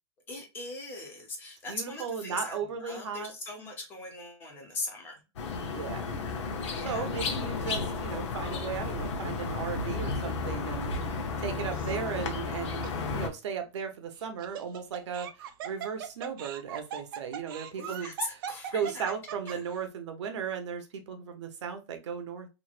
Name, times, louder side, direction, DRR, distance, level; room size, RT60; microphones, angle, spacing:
voice 1, 0.3-5.2 6.7-7.1 11.4-12.1 17.8-19.1 19.5-19.6, left 2 dB, 15° left, 2 dB, 0.6 m, -40 dB
voice 2, 1.7-3.3 5.7-6.2 6.8-12.9 13.1-15.3 15.6-18.1 18.7-22.5, right 7 dB, 90° right, 6 dB, 0.8 m, -36 dB
sound 1, 5.4-13.3, left 4 dB, 85° left, 0.7 m, -33 dB
Laughter, 11.7-12.2 12.8-12.9 14.2-19.8, right 8 dB, 50° right, 0.4 m, -40 dB
3.1 x 2.5 x 2.3 m, 0.27 s
supercardioid pair, 175°, 15 cm